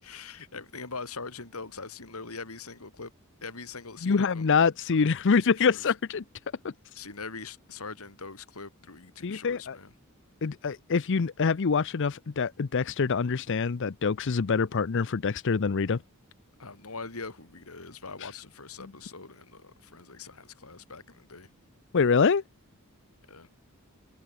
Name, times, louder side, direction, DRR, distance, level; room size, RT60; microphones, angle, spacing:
voice 1, 0.0-3.1 3.4-4.5 5.1-5.9 6.9-9.9 16.6-21.5 23.3-23.5, left 4 dB, 85° left, 3.1 m, -42 dB
voice 2, 4.0-6.2 6.6-6.7 9.2-9.8 10.4-16.0 21.9-22.4, left 5 dB, 60° left, 0.6 m, -25 dB
head